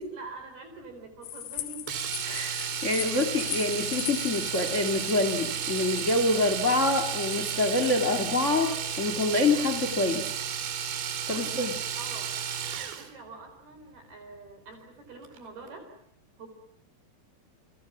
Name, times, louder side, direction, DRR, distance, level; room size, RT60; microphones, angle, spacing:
voice 1, 0.1-1.9 11.3-12.3 12.9-15.9 16.4-16.5, right 3 dB, 65° right, 5 dB, 6.3 m, -45 dB
sound 1, 1.2-7.9, left 12 dB, 75° left, 3.6 m, -40 dB
Domestic sounds home sounds, 1.9-13.1 15.2-15.4 15.7-15.8, right 8 dB, 80° right, 4.6 m, -33 dB
voice 2, 2.2-10.3 11.3-11.7, left 2 dB, 30° left, 8 dB, 1.5 m, -26 dB
30.0 x 28.0 x 6.1 m, 0.69 s
omnidirectional pair, 4.9 m